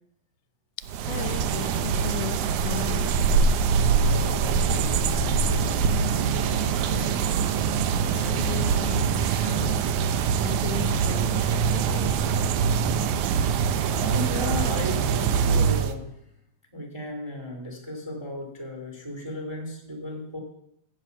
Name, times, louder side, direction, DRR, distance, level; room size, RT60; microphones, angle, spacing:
sound 1, 0.8-15.9, right 6 dB, 75° right, 1.8 m, -24 dB
voice 1, 1.0-3.1 8.0-9.9 10.4-12.2, left 11 dB, 90° left, 14 dB, 2.5 m, -36 dB
voice 2, 4.0-7.2 10.8-11.2 12.8-13.1 13.8-16.1 16.7-20.4, left 1 dB, 10° right, 2 dB, 1.4 m, -35 dB
9.3 x 8.1 x 8.1 m, 0.76 s
omnidirectional pair, 4.2 m